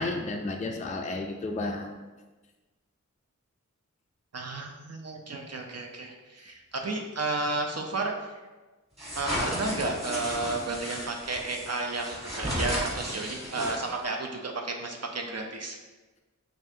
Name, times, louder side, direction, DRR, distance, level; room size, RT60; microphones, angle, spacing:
voice 1, 0.0-2.0, left 2 dB, 25° left, 2 dB, 0.4 m, -32 dB
voice 2, 4.3-8.3 9.2-15.8, right 2 dB, 55° right, 2 dB, 0.6 m, -32 dB
sound 1, 9.0-14.1, equal, 20° right, 1.5 m, -34 dB
5.4 x 2.5 x 2.7 m, 1.2 s
wide cardioid pair, 60°, 31 cm